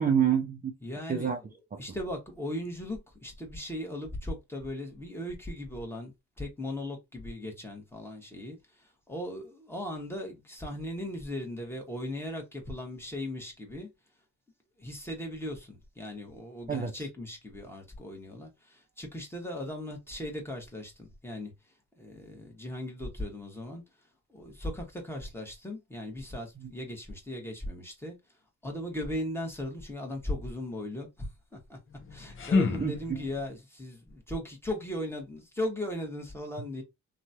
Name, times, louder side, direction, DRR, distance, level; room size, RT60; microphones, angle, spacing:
voice 1, 0.0-0.7 1.1-1.4 16.7-16.9 32.8-33.2, right 8 dB, 30° right, 0.6 m, -27 dB
voice 2, 0.8-13.9 14.8-21.5 22.0-23.8 24.3-28.2 28.6-31.8 32.1-36.8, left 1 dB, 10° left, 1.3 m, -38 dB
sound 1, 31.9-33.5, left 4 dB, 45° left, 0.7 m, -30 dB
3.0 x 2.4 x 2.7 m
cardioid pair, 90°, 30 cm